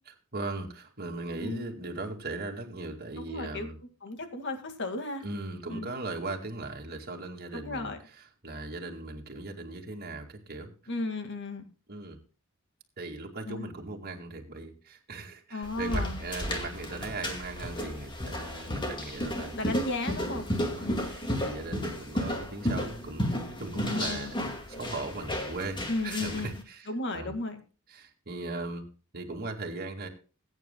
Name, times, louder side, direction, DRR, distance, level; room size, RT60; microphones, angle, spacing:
voice 1, 0.3-3.8 5.2-7.9 8.4-10.7 11.9-12.2 13.0-19.6 20.2-24.4 24.7-27.3 27.9-28.8 29.1-30.1, right 2 dB, 45° right, 2 dB, 2.2 m, -38 dB
voice 2, 3.2-3.7 4.0-5.2 5.7-5.9 7.5-8.0 10.9-11.7 13.5-13.7 15.5-16.2 19.6-20.5 20.8-21.1 23.7-24.3 25.9-26.5 26.9-27.6, left 2 dB, 55° left, 7 dB, 2.0 m, -34 dB
sound 1, 15.6-26.5, equal, 20° left, 2.1 m, -33 dB
20.5 x 9.2 x 2.2 m, 0.35 s
head